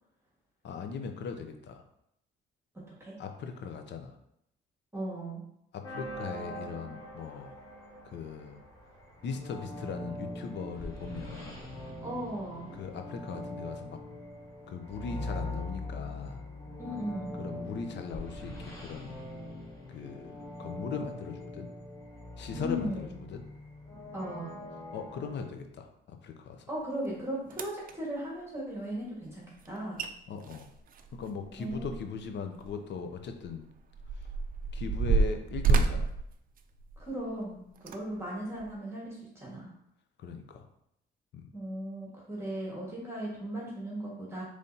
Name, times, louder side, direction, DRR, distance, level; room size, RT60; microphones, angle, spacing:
voice 1, 0.6-1.8 3.2-4.1 5.7-7.6 8.1-8.6 9.2-11.7 12.8-14.0 14.7-16.4 17.4-19.1 19.9-21.7 22.4-23.4 24.9-26.6 30.3-30.7 31.1-33.6 34.7-36.1 40.2-40.6 41.3-41.4, left 5 dB, 65° left, 6 dB, 0.6 m, -39 dB
voice 2, 4.9-5.4 12.0-12.8 16.8-17.4 22.6-23.2 24.1-24.6 26.7-30.1 31.6-31.9 37.0-39.7 41.5-44.4, right 1 dB, 15° right, -5 dB, 1.6 m, -37 dB
sound 1, 5.8-25.5, left 1 dB, 15° left, 1.4 m, -42 dB
sound 2, 27.0-27.1 27.5-27.9 29.7-29.8 30.0-30.1 30.4-32.2 32.6-32.7 33.4-37.2 37.8-38.0 38.6-38.7, right 4 dB, 45° right, 0.4 m, -29 dB
5.2 x 3.2 x 2.8 m, 0.76 s
cardioid pair, 90°, 20 cm